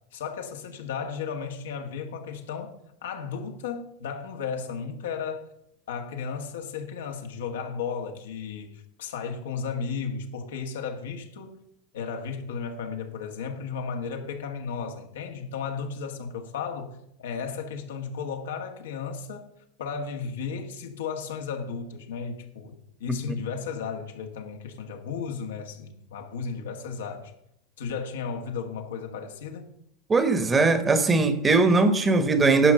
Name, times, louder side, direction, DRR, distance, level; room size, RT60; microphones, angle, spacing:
voice 1, 0.1-5.5 5.9-11.6 11.9-19.5 19.8-27.3 27.8-29.7, left 6 dB, 90° left, 1.6 m, -34 dB
voice 2, 30.1-32.7, right 3 dB, 15° right, 1.0 m, -20 dB
11.0 x 5.1 x 6.8 m
supercardioid pair, 125°, 0 cm